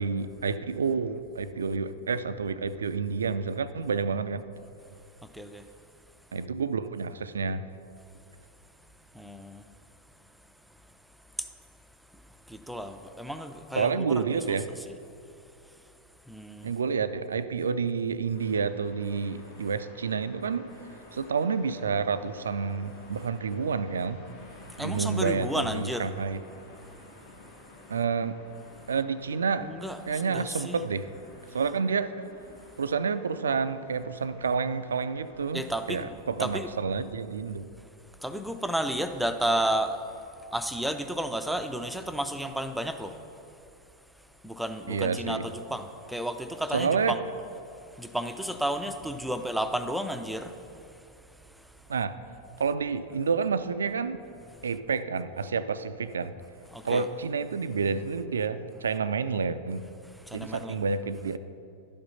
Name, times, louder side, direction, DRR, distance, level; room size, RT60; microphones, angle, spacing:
voice 1, 0.0-4.4 6.3-7.7 13.8-14.7 16.6-20.7 21.1-24.3 24.8-26.4 27.9-28.4 28.9-31.1 31.5-32.3 32.8-37.7 44.9-45.4 46.7-47.2 51.9-52.2 52.6-54.2 54.6-56.3 56.8-59.9 60.3-61.4, right 5 dB, 70° right, 13 dB, 0.3 m, -29 dB
voice 2, 5.3-5.7 9.1-9.7 11.4-11.5 12.5-14.6 14.9-15.0 16.3-16.7 24.8-26.1 27.2-27.7 29.6-30.8 35.5-36.1 36.4-36.7 38.2-40.1 40.5-43.2 44.4-47.2 47.9-51.1 56.7-57.1 60.1-60.8, right 1 dB, ahead, 7 dB, 0.5 m, -32 dB
sound 1, 18.3-36.0, left 2 dB, 60° left, 2.3 m, -52 dB
11.5 x 5.2 x 5.5 m, 2.7 s
figure-of-eight pair, 90°, 0 cm